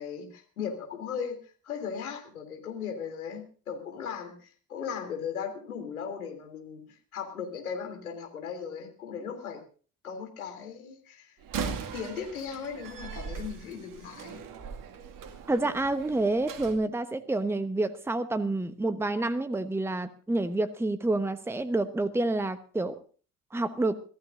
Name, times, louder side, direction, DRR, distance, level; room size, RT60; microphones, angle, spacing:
voice 1, 0.0-9.6 10.0-14.4, left 7 dB, 75° left, 3 dB, 3.4 m, -37 dB
Slam, 11.4-16.8, right 7 dB, 45° right, 2.2 m, -39 dB
voice 2, 15.5-23.0 23.5-24.0, right 2 dB, 5° right, 13 dB, 1.1 m, -28 dB
25.5 x 16.0 x 2.7 m, 0.40 s
figure-of-eight pair, 55°, 43 cm